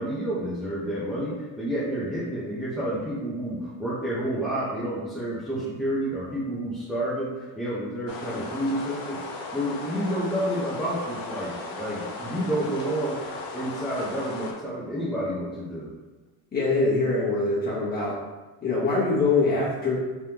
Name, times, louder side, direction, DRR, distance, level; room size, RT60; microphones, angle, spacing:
voice 1, 0.0-15.9, right 1 dB, ahead, -10 dB, 0.7 m, -30 dB
sound 1, 8.1-14.5, left 3 dB, 60° left, 0.8 m, -36 dB
voice 2, 16.5-18.2 18.6-19.9, left 3 dB, 25° left, -7 dB, 1.2 m, -23 dB
3.5 x 3.3 x 2.9 m, 1.2 s
cardioid pair, 140°, 38 cm